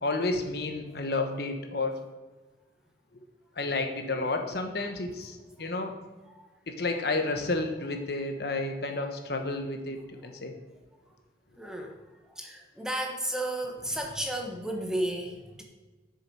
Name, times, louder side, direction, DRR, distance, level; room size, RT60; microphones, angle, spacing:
voice 1, 0.0-2.0 3.6-6.0 6.7-10.0 10.2-10.5, left 2 dB, 60° left, 5 dB, 1.1 m, -31 dB
voice 2, 11.6-12.0 12.3-15.6, right 1 dB, 5° right, 1 dB, 1.2 m, -33 dB
11.5 x 6.7 x 4.7 m, 1.3 s
head